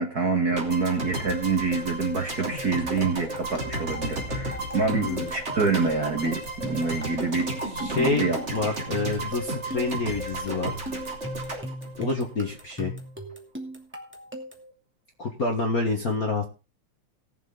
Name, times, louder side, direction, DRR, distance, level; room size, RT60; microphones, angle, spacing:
voice 1, 0.0-7.5 7.8-8.4, right 4 dB, 45° right, 3 dB, 1.4 m, -26 dB
sound 1, 0.6-12.8, right 2 dB, 20° right, 3.4 m, -33 dB
sound 2, 2.4-14.7, equal, 5° right, 1.8 m, -39 dB
voice 2, 4.9-5.3 7.7-10.7 12.0-12.9 15.2-16.4, left 3 dB, 40° left, 3 dB, 1.3 m, -27 dB
18.5 x 7.5 x 3.8 m, 0.31 s
omnidirectional pair, 3.4 m